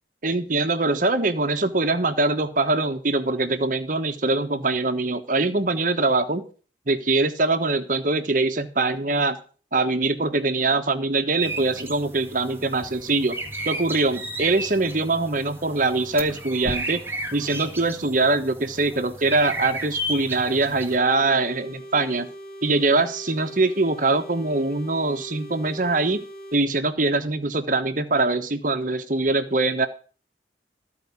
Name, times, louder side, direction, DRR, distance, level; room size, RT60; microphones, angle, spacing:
voice 1, 0.2-6.5 6.9-9.4 9.7-13.3 13.6-17.0 17.3-22.3 22.6-26.2 26.5-29.9, right 3 dB, 45° right, 8 dB, 1.1 m, -23 dB
sound 1, 11.4-21.0, right 1 dB, 10° right, 1.5 m, -34 dB
sound 2, 20.9-26.6, right 1 dB, 50° left, 3.4 m, -41 dB
14.0 x 4.9 x 8.2 m, 0.40 s
head